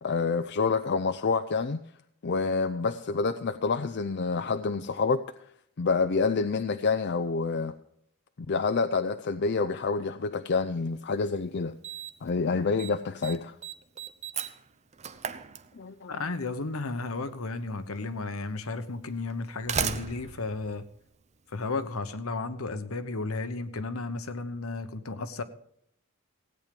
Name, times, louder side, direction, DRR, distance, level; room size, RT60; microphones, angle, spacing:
voice 1, 0.0-1.8 2.2-5.2 5.8-7.7 8.5-11.8 12.2-13.5 15.8-16.1, left 4 dB, 55° left, 0.5 m, -27 dB
Slam, 11.0-11.1 11.8-12.3 12.6-12.9 13.2-16.2 17.3-17.4 18.3-18.4 19.3-21.6, right 7 dB, 30° right, 0.7 m, -35 dB
voice 2, 16.1-20.8 21.5-25.4, left 3 dB, 75° left, 1.0 m, -33 dB
16.5 x 9.0 x 5.2 m
head